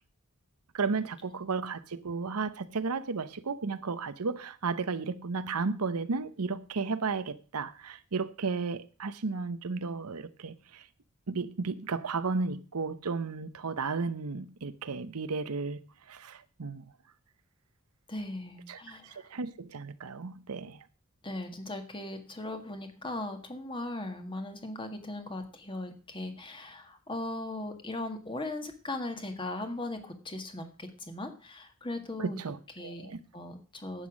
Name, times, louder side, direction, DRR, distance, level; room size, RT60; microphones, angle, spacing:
voice 1, 0.7-10.8 11.3-15.8 16.1-16.8 18.7-20.8 32.2-33.2, right 4 dB, 90° right, 0.8 m, -34 dB
voice 2, 18.1-19.3 21.2-32.4 32.8-34.1, left 2 dB, 20° left, 1.6 m, -38 dB
11.0 x 8.3 x 6.2 m
head